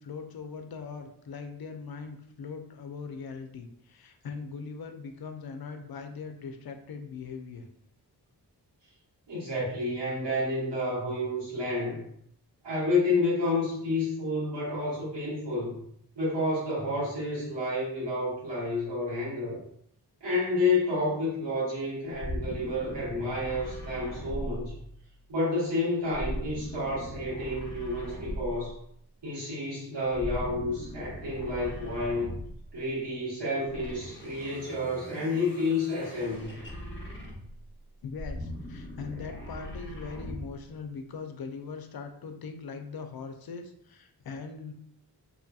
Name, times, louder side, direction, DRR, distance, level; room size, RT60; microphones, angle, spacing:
voice 1, 0.0-7.7 11.7-11.8 38.0-44.7, left 5 dB, 60° left, 6 dB, 0.5 m, -40 dB
voice 2, 9.3-12.0 12.6-15.8 16.1-19.6 20.2-24.7 25.3-28.8 29.2-32.3 32.7-36.5, left 2 dB, 90° right, -8 dB, 1.4 m, -30 dB
sound 1, 22.2-25.2 26.1-28.8 30.1-32.7 33.6-37.6 38.1-40.6, equal, 30° left, 0.8 m, -39 dB
2.8 x 2.6 x 2.3 m, 0.70 s
cardioid pair, 55°, 41 cm